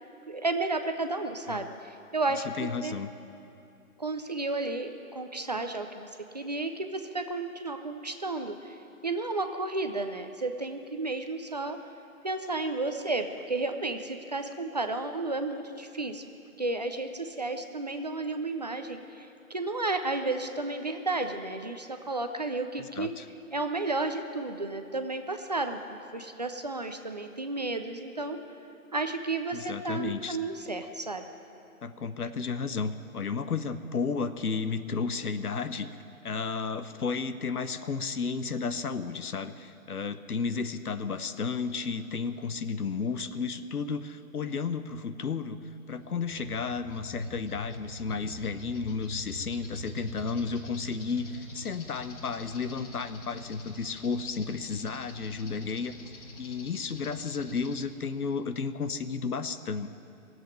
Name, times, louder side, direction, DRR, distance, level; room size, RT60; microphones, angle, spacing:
voice 1, 0.3-3.0 4.0-6.1 6.3-8.8 9.0-11.8 12.2-16.2 16.6-23.1 23.5-28.4 28.9-31.2, right 2 dB, 30° right, 7 dB, 0.5 m, -32 dB
voice 2, 2.6-3.1 22.8-23.3 29.5-30.4 31.8-36.0 36.2-45.6 45.9-59.9, left 5 dB, 85° left, 11 dB, 1.0 m, -33 dB
sound 1, 46.0-57.8, left 1 dB, 55° left, 2.5 m, -44 dB
19.5 x 8.0 x 9.1 m, 2.7 s
hypercardioid pair, 155°, 43 cm